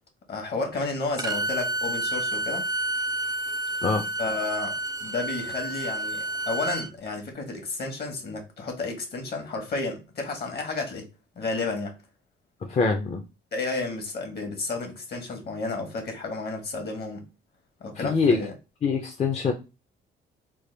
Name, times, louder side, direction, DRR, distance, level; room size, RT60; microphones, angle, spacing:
voice 1, 0.3-2.7 4.2-11.1 11.3-12.0 13.5-17.3 17.8-18.5, left 3 dB, 55° left, 1.3 m, -32 dB
Bowed string instrument, 1.2-6.9, right 1 dB, 20° right, 0.3 m, -30 dB
voice 2, 12.7-13.2 18.0-18.4 18.8-19.5, left 4 dB, 35° left, 0.5 m, -24 dB
3.4 x 2.1 x 3.2 m
cardioid pair, 90°, 20 cm